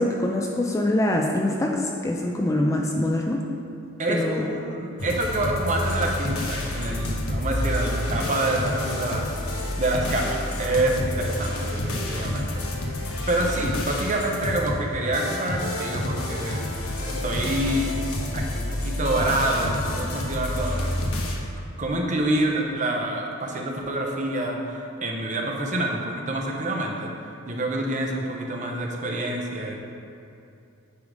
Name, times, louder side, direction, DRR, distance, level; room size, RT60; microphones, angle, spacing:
voice 1, 0.0-3.5 4.1-4.4, left 1 dB, 15° left, 1 dB, 0.4 m, -24 dB
voice 2, 4.0-9.3 9.8-12.6 13.0-16.6 17.0-17.9 18.3-21.0 21.8-27.1 27.5-29.8, right 1 dB, 35° right, 1 dB, 0.8 m, -27 dB
sound 1, 5.0-21.4, left 1 dB, 90° left, 1.0 m, -29 dB
9.4 x 3.8 x 5.0 m, 2.6 s
head